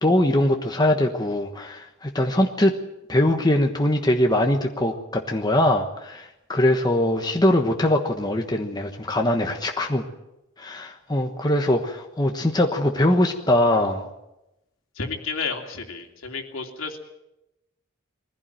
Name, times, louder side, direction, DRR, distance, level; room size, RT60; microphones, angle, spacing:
voice 1, 0.0-2.7 3.1-10.0 10.6-14.1, left 1 dB, 20° left, 3 dB, 1.2 m, -22 dB
voice 2, 15.0-17.0, left 4 dB, 75° left, 3 dB, 2.9 m, -31 dB
21.0 x 15.5 x 9.1 m, 0.91 s
head